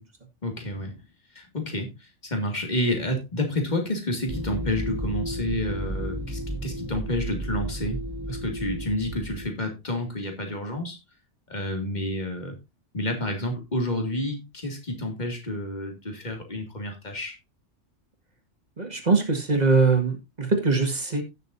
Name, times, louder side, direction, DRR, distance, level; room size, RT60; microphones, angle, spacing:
voice 1, 0.4-1.0 1.3-8.0 8.3-11.0 11.5-12.6 12.9-17.4, left 1 dB, 40° left, 2.4 m, -29 dB
sound 1, 4.3-9.5, equal, 15° right, 2.7 m, -32 dB
voice 2, 18.8-21.2, right 4 dB, 35° right, 2.0 m, -22 dB
16.5 x 6.7 x 2.7 m
omnidirectional pair, 1.2 m